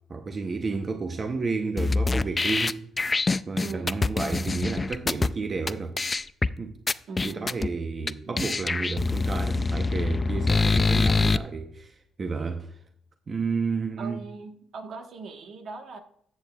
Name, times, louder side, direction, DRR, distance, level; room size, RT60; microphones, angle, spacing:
voice 1, 0.1-2.8 3.5-5.9 6.6-6.8 7.2-12.8 13.3-14.2, right 4 dB, 40° right, 0.8 m, -31 dB
sound 1, 1.8-5.3 5.7-5.8 6.0-6.5 6.9-7.7 8.1-8.2 8.4-11.4, left 3 dB, 25° left, 0.3 m, -25 dB
voice 2, 3.6-4.0 7.1-7.5 14.0-16.0, right 4 dB, 65° right, 1.3 m, -39 dB
13.5 x 8.1 x 2.4 m
cardioid pair, 90°, 0 cm